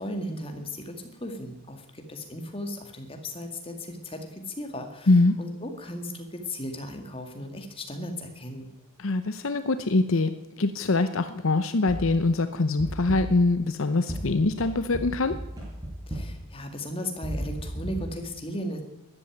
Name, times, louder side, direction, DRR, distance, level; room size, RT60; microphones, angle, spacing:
voice 1, 0.0-8.7 16.1-18.8, left 1 dB, 25° left, 5 dB, 2.2 m, -36 dB
voice 2, 9.0-10.3 10.6-15.4, left 2 dB, 65° left, 11 dB, 0.8 m, -23 dB
sound 1, 11.9-12.3 12.8-13.5 14.1-16.5 17.2-18.0, equal, 15° right, 5.3 m, -35 dB
13.0 x 11.0 x 9.5 m, 0.99 s
head